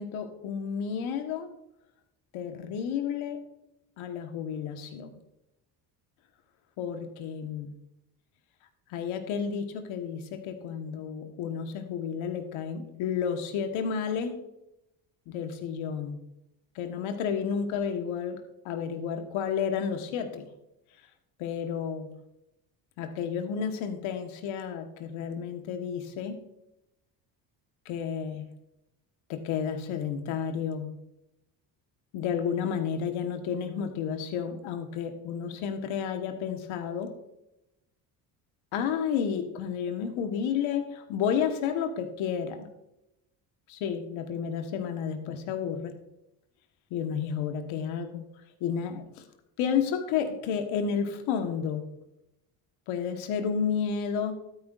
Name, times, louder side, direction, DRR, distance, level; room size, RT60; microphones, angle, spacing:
voice 1, 0.0-1.5 2.3-3.4 4.0-5.1 6.8-7.8 8.9-14.3 15.3-16.2 16.7-20.5 21.4-22.1 23.0-26.4 27.8-28.5 29.3-31.0 32.1-37.1 38.7-42.7 43.7-46.0 46.9-48.3 48.6-49.2 49.6-51.9 52.9-54.3, left 7 dB, 75° left, 6 dB, 1.5 m, -31 dB
13.0 x 9.2 x 2.5 m, 0.86 s
supercardioid pair, 75°, 48 cm